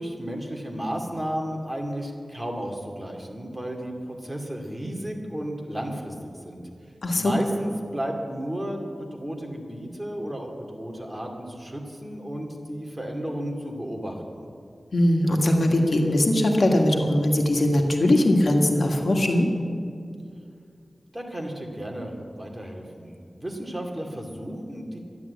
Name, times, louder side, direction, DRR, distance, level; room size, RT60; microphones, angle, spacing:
voice 1, 0.0-6.2 6.4-6.6 7.1-14.5 21.1-25.0, equal, 15° right, 1 dB, 2.5 m, -33 dB
voice 2, 7.0-7.4 14.9-19.5, left 1 dB, 75° left, 2 dB, 1.7 m, -20 dB
12.5 x 11.0 x 8.4 m, 2.3 s
wide cardioid pair, 70°, 0 cm